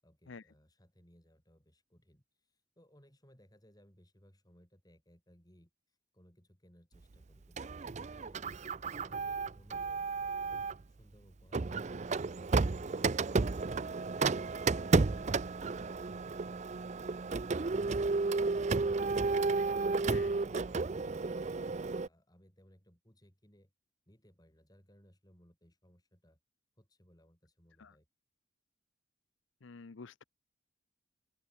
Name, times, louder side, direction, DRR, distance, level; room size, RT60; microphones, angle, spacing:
voice 1, 0.0-8.4 8.8-10.6 10.9-13.5 20.3-21.5 21.9-23.7 24.1-26.4 26.8-28.1, equal, 20° left, 6.2 m, -64 dB
Printer, 7.6-10.8 11.5-22.1, right 4 dB, 35° right, 0.5 m, -32 dB
voice 2, 29.6-30.2, left 4 dB, 70° left, 0.7 m, -49 dB
open air
head